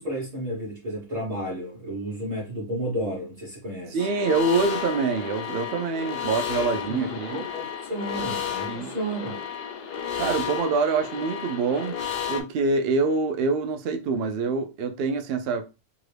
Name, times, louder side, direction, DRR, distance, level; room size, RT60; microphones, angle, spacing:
voice 1, 0.0-4.1 6.9-9.4, right 1 dB, 35° right, 0.6 m, -32 dB
voice 2, 3.9-7.5 8.7-8.9 10.2-12.0 12.3-15.6, right 4 dB, 85° right, 0.5 m, -25 dB
sound 1, 4.0-12.4, left 8 dB, 70° left, 0.5 m, -32 dB
2.8 x 2.5 x 3.2 m
omnidirectional pair, 1.6 m